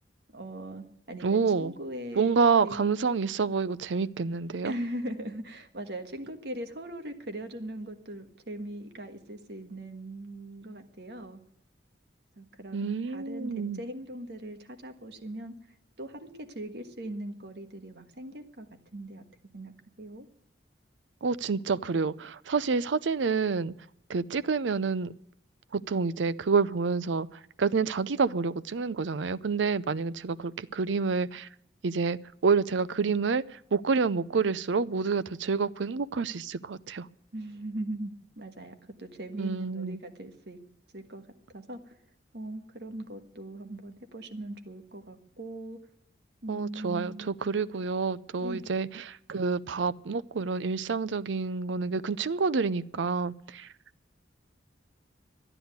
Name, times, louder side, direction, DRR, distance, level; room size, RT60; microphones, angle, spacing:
voice 1, 0.3-2.3 2.6-2.9 4.6-11.4 12.4-15.5 16.0-18.7 18.9-19.2 19.5-20.3 37.3-40.6 40.9-41.2 41.5-42.0 42.3-45.8 46.4-47.3 48.3-48.6, right 1 dB, 60° right, 6 dB, 1.5 m, -40 dB
voice 2, 1.2-1.7 2.2-4.7 12.7-13.8 21.2-23.7 24.1-25.1 25.7-27.3 27.6-31.5 31.8-33.4 33.7-37.1 39.4-40.0 46.5-53.7, right 5 dB, 90° right, 15 dB, 0.5 m, -28 dB
12.5 x 9.9 x 9.4 m, 0.72 s
head